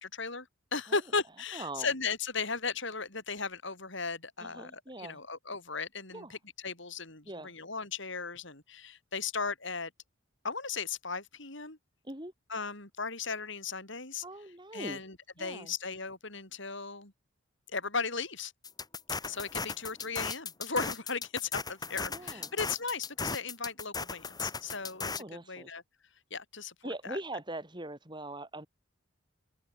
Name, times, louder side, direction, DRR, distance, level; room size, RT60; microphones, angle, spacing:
voice 1, 0.0-9.9 10.4-11.8 12.5-14.2 14.7-17.1 17.7-18.5 19.2-25.8 26.3-27.2, left 4 dB, 60° left, 5.4 m, -36 dB
voice 2, 1.5-1.9 4.4-5.2 6.1-6.4 7.3-7.5 12.0-12.3 14.2-15.0 15.4-15.7 22.1-22.5 25.2-25.7 26.8-28.7, right 1 dB, 20° right, 6.9 m, -41 dB
sound 1, 18.6-25.2, left 4 dB, 20° left, 6.6 m, -37 dB
head